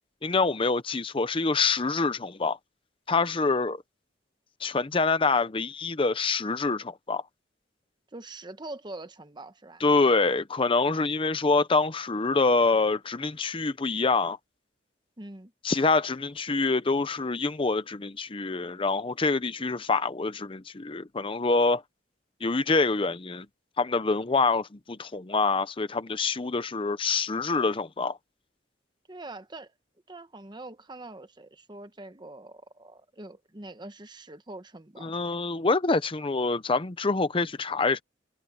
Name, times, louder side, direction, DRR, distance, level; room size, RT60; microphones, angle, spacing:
voice 1, 0.2-2.6 3.1-3.8 4.6-7.2 9.8-14.4 15.6-21.8 22.4-23.5 23.8-28.2 35.0-38.0, left 3 dB, 30° left, 0.7 m, -26 dB
voice 2, 8.1-9.8 15.2-15.5 29.1-29.7 30.1-35.1, right 2 dB, 25° right, 1.1 m, -43 dB
head